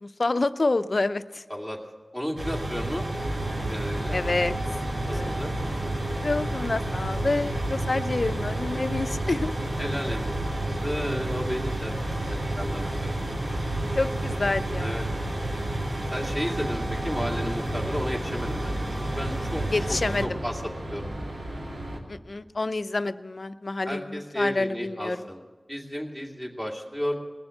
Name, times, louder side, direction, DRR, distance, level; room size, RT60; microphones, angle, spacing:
voice 1, 0.0-1.4 4.1-4.5 5.1-5.3 6.2-9.5 13.9-15.0 19.7-20.4 22.1-25.2, left 2 dB, 60° left, 12 dB, 0.5 m, -28 dB
voice 2, 2.1-3.1 3.7-4.2 5.1-5.5 9.8-13.1 14.8-15.0 16.1-18.8 19.1-19.6 19.9-21.3 23.8-25.4 25.7-27.2, equal, 15° right, 0 dB, 2.5 m, -33 dB
sound 1, 2.4-20.3, right 1 dB, 55° right, 2.0 m, -31 dB
sound 2, 3.2-22.0, right 1 dB, 75° right, 2.6 m, -36 dB
20.0 x 7.2 x 7.7 m, 1.4 s
wide cardioid pair, 55°, 0 cm